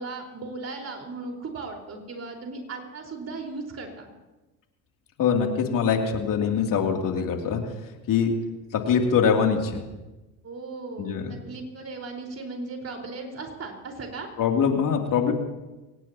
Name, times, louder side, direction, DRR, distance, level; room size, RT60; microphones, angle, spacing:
voice 1, 0.0-4.1 10.4-14.3, right 3 dB, 35° right, 2 dB, 4.8 m, -37 dB
voice 2, 5.2-7.6 8.1-8.3 8.7-9.8 11.0-11.4 14.4-15.3, left 6 dB, 50° left, 2 dB, 3.0 m, -23 dB
24.0 x 18.5 x 3.0 m, 1.1 s
hypercardioid pair, 65°, 42 cm